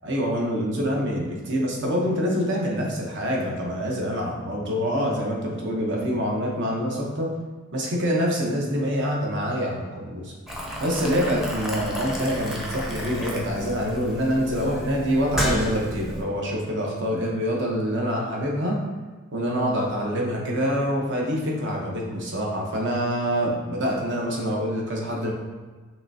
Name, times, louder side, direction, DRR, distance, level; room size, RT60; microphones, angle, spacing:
voice 1, 0.0-7.3 7.7-10.3 10.8-18.8 19.3-25.3, equal, 55° right, -2 dB, 0.9 m, -26 dB
Boiling, 10.5-16.2, equal, ahead, 0.6 m, -32 dB
5.8 x 3.2 x 2.7 m, 1.4 s
head